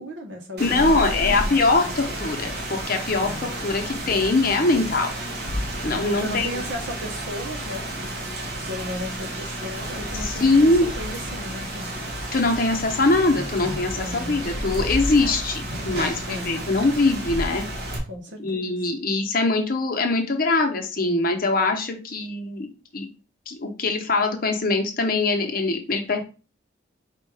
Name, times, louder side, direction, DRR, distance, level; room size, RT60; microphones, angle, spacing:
voice 1, 0.0-1.6 3.2-3.5 5.9-12.0 13.9-14.4 16.3-16.7 18.1-18.8, left 1 dB, 75° right, 2 dB, 1.1 m, -36 dB
voice 2, 0.6-3.3 3.6-5.1 5.8-6.5 10.2-10.9 12.3-17.6 18.4-23.1 23.5-26.2, left 3 dB, 50° left, 3 dB, 0.9 m, -22 dB
Rain, 0.6-18.0, right 1 dB, 55° right, 1.0 m, -31 dB
4.5 x 2.5 x 4.8 m, 0.34 s
head